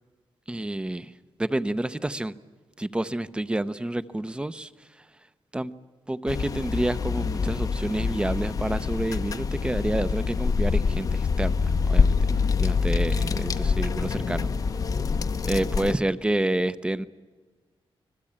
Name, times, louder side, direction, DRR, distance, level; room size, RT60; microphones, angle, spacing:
voice 1, 0.5-1.1 1.4-2.3 2.8-4.7 5.5-5.7 6.1-12.2 12.6-14.5 15.4-17.1, right 1 dB, 10° right, 14 dB, 0.7 m, -28 dB
sound 1, 6.3-16.0, left 5 dB, 40° left, 0.7 m, -25 dB
26.5 x 21.0 x 8.7 m, 1.4 s
wide cardioid pair, 175°, 9 cm